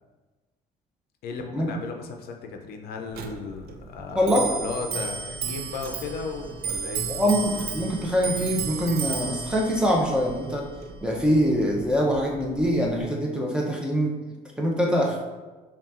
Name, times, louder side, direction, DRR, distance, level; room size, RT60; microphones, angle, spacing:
voice 1, 1.2-7.1, left 4 dB, 65° left, 3 dB, 0.5 m, -35 dB
Clock, 3.1-13.0, right 5 dB, 65° right, 0.4 m, -34 dB
voice 2, 4.2-4.5 7.1-10.7 11.0-14.2 14.6-15.2, equal, 5° right, -1 dB, 0.6 m, -24 dB
5.6 x 2.3 x 2.4 m, 1.2 s
cardioid pair, 110°, 17 cm